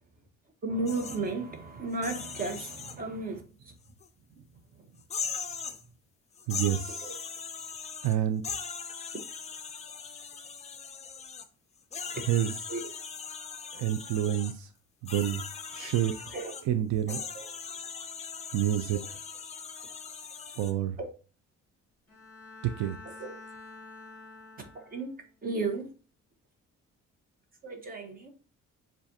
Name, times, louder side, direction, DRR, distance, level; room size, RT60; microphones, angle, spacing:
voice 1, 0.6-3.7 4.3-4.4 4.7-5.0 7.0-7.1 12.1-12.2 12.7-12.9 16.3-16.6 17.1-17.5 18.9-19.0 21.0-21.1 23.0-23.4 24.7-25.1 25.4-25.9 27.6-28.3, right 3 dB, 30° right, 4 dB, 1.1 m, -35 dB
sound 1, 0.9-1.2 1.9-3.0 4.0-4.1 5.0-5.8 6.3-8.1 8.4-11.5 11.9-14.5 15.0-16.6 17.1-20.7, left 6 dB, 25° left, 0.4 m, -39 dB
voice 2, 6.5-7.1 8.0-8.6 12.3-12.5 13.7-14.5 15.0-15.4 15.7-16.1 16.6-17.2 18.5-19.0 20.5-21.0 22.6-23.0, right 11 dB, 80° right, 9 dB, 0.5 m, -28 dB
Bowed string instrument, 22.1-25.3, left 3 dB, 5° left, 1.7 m, -48 dB
7.2 x 2.5 x 2.7 m, 0.35 s
cardioid pair, 130°, 29 cm